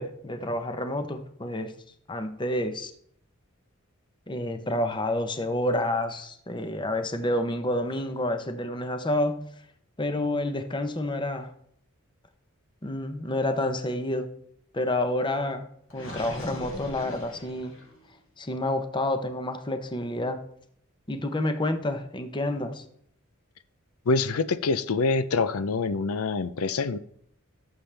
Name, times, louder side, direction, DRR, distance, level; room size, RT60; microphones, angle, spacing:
voice 1, 0.0-1.7 2.1-2.9 4.3-9.5 10.0-11.5 12.8-14.3 14.7-17.7 18.4-20.4 21.1-22.8, left 1 dB, 20° left, 0.8 m, -29 dB
Gurgling, 15.9-18.0, left 1 dB, 65° left, 3.8 m, -40 dB
voice 2, 24.1-27.0, left 4 dB, 90° left, 0.6 m, -25 dB
17.0 x 7.3 x 3.4 m
head